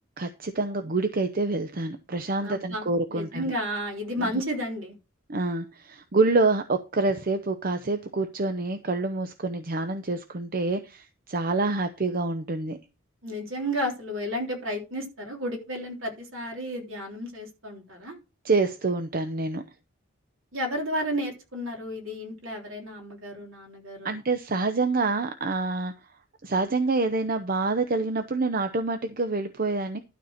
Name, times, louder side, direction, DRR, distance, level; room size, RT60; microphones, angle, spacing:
voice 1, 0.2-3.5 4.2-4.3 5.3-12.8 18.4-19.6 24.0-25.9 26.4-30.0, right 3 dB, 45° right, 0.7 m, -27 dB
voice 2, 2.4-5.0 13.2-18.2 20.5-24.2, equal, 70° right, 3.5 m, -32 dB
12.0 x 4.3 x 6.3 m
head